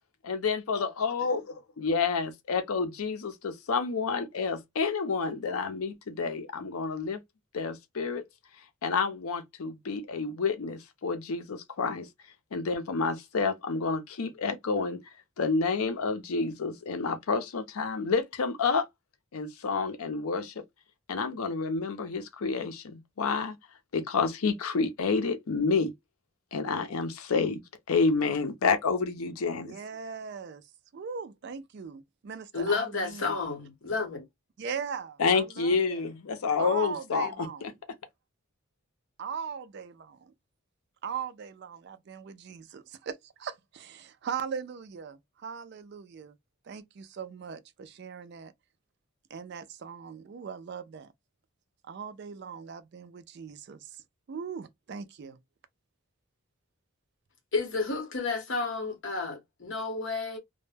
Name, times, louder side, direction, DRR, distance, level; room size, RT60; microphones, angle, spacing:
voice 1, 0.2-1.4 1.8-7.2 7.5-8.2 8.8-12.1 12.5-15.0 15.4-18.9 19.3-20.6 21.1-23.6 23.9-25.9 26.5-27.6 27.9-29.7 35.2-37.7, left 4 dB, 80° left, 0.5 m, -29 dB
voice 2, 29.6-30.7 30.9-33.4 34.6-36.0 36.6-37.7 39.2-40.3 41.0-46.4 46.6-48.5 49.3-51.1 51.9-54.0 54.3-55.4, right 6 dB, 50° right, 0.3 m, -39 dB
voice 3, 32.5-34.2 57.5-60.4, left 4 dB, 55° left, 0.8 m, -31 dB
2.1 x 2.1 x 3.2 m
head